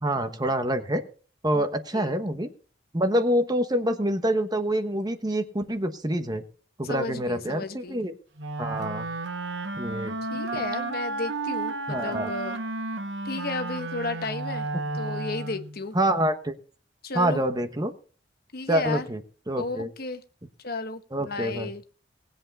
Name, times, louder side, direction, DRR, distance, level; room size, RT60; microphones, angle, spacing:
voice 1, 0.0-1.0 1.4-2.5 2.9-6.4 6.8-8.1 8.6-9.1 9.8-10.1 10.5-10.6 11.9-12.3 15.9-16.5 17.1-17.9 18.7-19.2 19.5-19.9 21.1-21.7, right 1 dB, 20° right, 1.1 m, -26 dB
voice 2, 6.8-8.0 10.3-12.6 13.2-14.7 14.9-16.0 17.0-17.5 18.5-19.1 19.6-20.2 20.6-21.8, left 3 dB, 55° left, 1.1 m, -33 dB
Wind instrument woodwind instrument, 8.4-15.8, right 2 dB, 80° right, 1.0 m, -32 dB
19.5 x 8.0 x 4.1 m
head